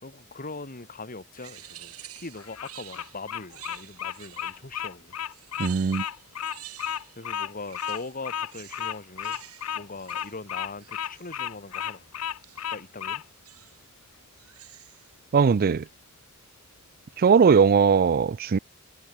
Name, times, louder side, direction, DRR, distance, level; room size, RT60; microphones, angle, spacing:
voice 1, 0.0-5.1 7.2-9.4 9.7-12.1 12.7-13.2, left 3 dB, 40° left, 2.5 m, -41 dB
sound 1, 1.4-4.7 5.3-7.3 7.6-11.4 12.4-12.8 13.4-13.9 14.3-15.1, right 14 dB, 80° right, 3.3 m, -49 dB
Bird vocalization bird call bird song, 2.4-13.2, left 9 dB, 80° left, 0.6 m, -33 dB
voice 2, 5.6-6.0 15.3-15.8 17.2-18.6, right 6 dB, 45° right, 0.4 m, -19 dB
head